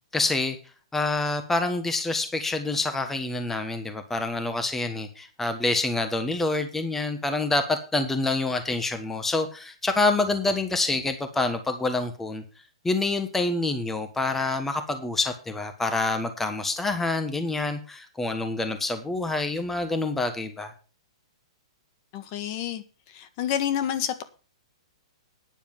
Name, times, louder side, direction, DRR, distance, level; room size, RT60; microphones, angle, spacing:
voice 1, 0.1-0.6 0.9-12.4 12.8-20.7, left 2 dB, 10° left, 7 dB, 1.4 m, -27 dB
voice 2, 22.1-24.2, left 10 dB, 45° left, 11 dB, 1.6 m, -29 dB
9.9 x 7.1 x 7.2 m, 0.36 s
hypercardioid pair, 130°, 3 cm